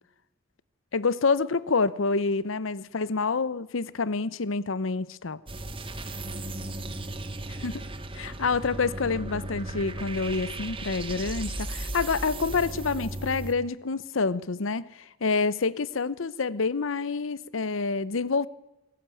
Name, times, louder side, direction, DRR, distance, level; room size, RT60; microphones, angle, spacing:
voice 1, 0.9-5.4 7.5-7.8 8.1-18.5, left 4 dB, 85° left, 0.8 m, -27 dB
sound 1, 5.5-13.5, right 2 dB, 25° right, 1.8 m, -36 dB
25.0 x 14.0 x 9.1 m
head